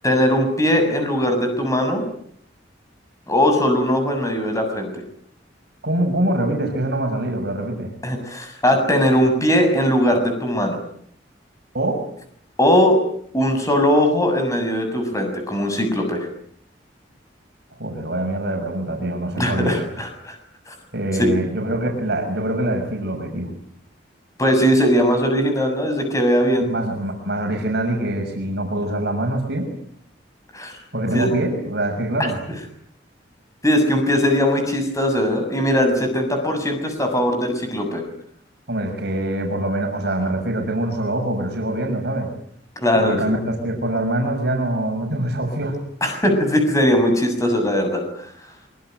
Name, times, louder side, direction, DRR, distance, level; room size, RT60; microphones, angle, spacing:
voice 1, 0.0-2.0 3.3-4.9 8.0-10.8 12.6-13.0 13.3-16.3 19.4-20.4 20.7-20.8 21.2-21.3 24.4-26.7 30.5-30.7 31.1-31.3 33.6-38.0 42.8-43.4 46.0-48.0, equal, 20° left, 5 dB, 7.1 m, -19 dB
voice 2, 5.8-7.9 11.7-12.0 17.8-19.9 20.9-23.5 26.6-29.7 30.9-32.4 38.7-42.3 42.9-45.8, right 1 dB, 60° right, 2 dB, 6.7 m, -24 dB
24.5 x 24.5 x 9.2 m, 0.65 s
head